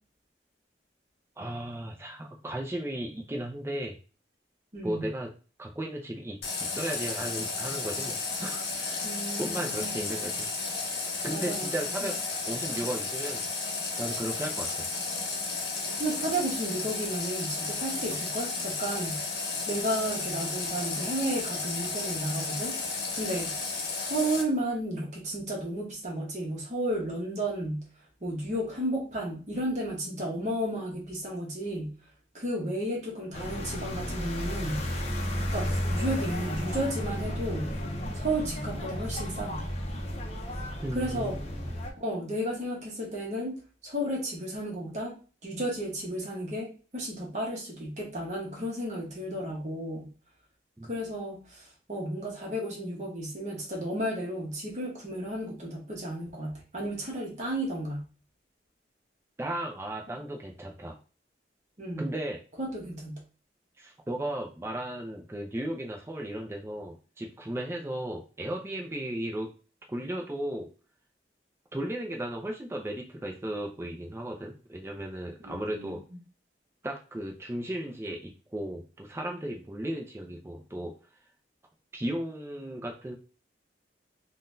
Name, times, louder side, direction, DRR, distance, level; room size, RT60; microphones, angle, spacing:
voice 1, 1.4-4.0 4.8-5.3 5.6-9.1 9.4-10.5 11.2-12.2 12.4-13.4 14.0-14.9 40.8-41.8 50.8-50.9 59.4-61.0 62.0-62.4 63.8-69.5 69.9-70.7 71.7-76.0 76.8-81.0 81.9-83.1, right 1 dB, 15° right, 1 dB, 0.4 m, -35 dB
voice 2, 4.7-5.1 9.0-10.1 11.3-11.7 12.0-12.1 16.0-19.2 19.7-23.5 23.9-27.8 28.2-31.9 32.3-34.9 35.5-37.7 38.1-39.6 40.9-41.4 42.0-43.5 43.8-45.2 45.4-50.1 50.8-58.0 60.1-60.2 61.8-62.1 62.6-63.2 75.4-76.0, right 1 dB, 40° right, -1 dB, 0.9 m, -33 dB
Water tap faucet, 6.4-24.4, left 4 dB, 70° left, 0.8 m, -33 dB
sound 1, 33.3-41.9, equal, 35° left, 0.5 m, -33 dB
3.7 x 2.2 x 2.5 m, 0.35 s
head